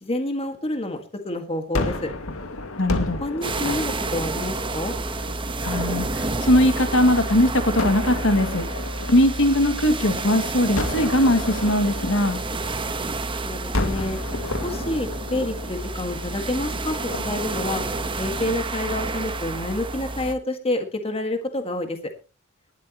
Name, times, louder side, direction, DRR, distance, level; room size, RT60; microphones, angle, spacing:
voice 1, 0.0-2.1 3.2-5.0 13.4-14.2 14.6-17.0 17.2-17.8 18.2-22.1, left 1 dB, 30° left, 6 dB, 1.8 m, -28 dB
Gunshot gunfire, 1.7-6.9 7.8-10.2 10.8-13.2 13.7-18.9, left 2 dB, 80° left, 2.1 m, -33 dB
voice 2, 2.8-3.2 5.6-8.6 9.1-12.4, left 1 dB, 65° left, 8 dB, 2.1 m, -20 dB
sound 1, 3.4-20.3, right 2 dB, 25° right, 1.1 m, -29 dB
18.5 x 12.5 x 3.0 m, 0.32 s
head